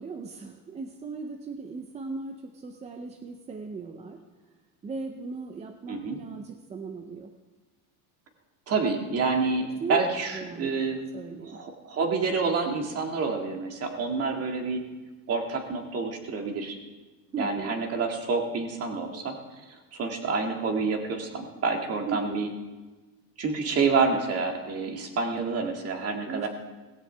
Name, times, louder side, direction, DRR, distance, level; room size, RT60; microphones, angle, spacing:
voice 1, 0.0-4.2 4.8-7.3 9.8-10.0 10.3-10.7 11.1-11.6 17.3-17.8 22.0-22.5 26.3-26.5, right 4 dB, 15° right, 6 dB, 0.5 m, -37 dB
voice 2, 5.9-6.2 8.7-11.0 11.4-14.8 15.3-16.8 17.4-22.5 23.4-26.5, right 4 dB, 30° right, 3 dB, 1.9 m, -28 dB
17.5 x 15.5 x 3.4 m, 1.2 s
cardioid pair, 145°, 46 cm